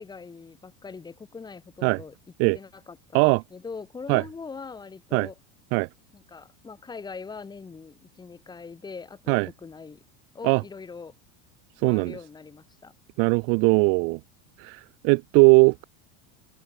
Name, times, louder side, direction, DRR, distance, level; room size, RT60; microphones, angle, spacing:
voice 1, 0.0-2.1 2.5-5.3 6.1-10.0 10.3-11.1 11.8-12.9, left 5 dB, 10° left, 5.4 m, -42 dB
voice 2, 11.8-12.2 13.2-14.2 14.6-15.8, right 38 dB, 40° right, 0.8 m, -20 dB
supercardioid pair, 175°, 37 cm